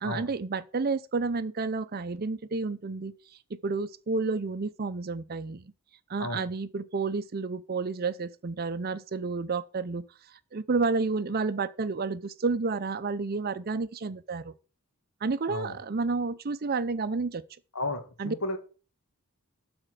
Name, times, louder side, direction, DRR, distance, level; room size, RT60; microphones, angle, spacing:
voice 1, 0.0-3.1 3.5-5.7 6.1-10.1 10.5-14.5 15.2-17.4 18.2-18.4, right 4 dB, 45° right, 0.5 m, -30 dB
voice 2, 17.7-18.6, left 2 dB, 70° left, 2.0 m, -33 dB
12.5 x 4.4 x 6.3 m
head